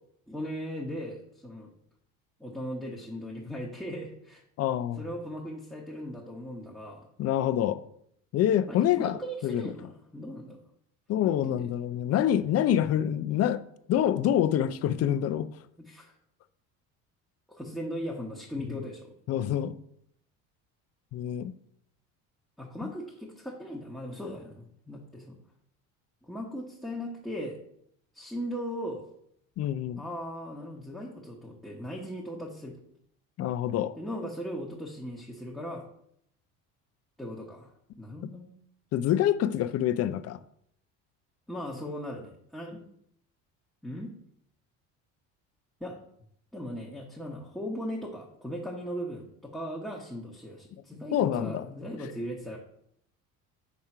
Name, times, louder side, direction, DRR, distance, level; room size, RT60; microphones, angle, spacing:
voice 1, 0.3-1.7 2.4-4.4 5.0-7.1 8.7-10.6 11.2-11.7 15.8-16.1 17.5-19.1 22.6-25.4 26.2-27.6 28.1-29.0 30.0-32.8 34.0-35.9 37.2-37.7 38.0-38.5 41.5-42.8 43.8-44.1 45.8-46.0 46.5-52.6, equal, ahead, 1.1 m, -38 dB
voice 2, 4.6-5.1 7.2-7.8 8.3-9.7 11.1-13.6 13.9-15.5 18.7-18.8 19.3-19.8 21.1-21.5 29.6-30.0 33.4-33.9 38.9-40.4 51.1-51.7, left 11 dB, 50° left, 0.5 m, -26 dB
5.9 x 3.6 x 5.4 m
cardioid pair, 115°, 32 cm